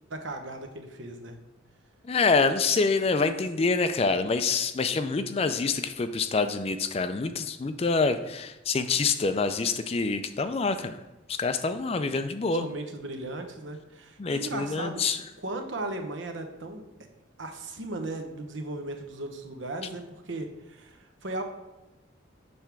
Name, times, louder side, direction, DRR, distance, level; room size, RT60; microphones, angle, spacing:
voice 1, 0.1-1.4 12.5-15.0 15.4-16.8 17.4-21.4, right 2 dB, 70° right, 5 dB, 0.9 m, -36 dB
voice 2, 2.1-11.0 11.3-12.7 14.2-15.2, left 4 dB, 30° left, 10 dB, 0.3 m, -26 dB
6.6 x 3.4 x 5.9 m, 1.0 s
head